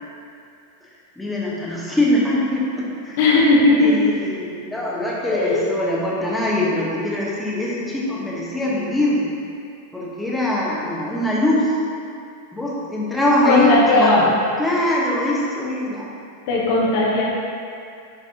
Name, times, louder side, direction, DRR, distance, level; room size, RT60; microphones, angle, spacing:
voice 1, 0.8-3.2 3.8-9.3 9.9-11.8 12.5-14.2 14.6-16.1, left 1 dB, 5° left, -7 dB, 1.2 m, -22 dB
voice 2, 3.2-4.1 5.3-5.7 13.4-14.3 16.5-17.2, left 2 dB, 50° left, -4 dB, 1.1 m, -17 dB
9.8 x 4.0 x 2.8 m, 2.4 s
figure-of-eight pair, 90°, 0 cm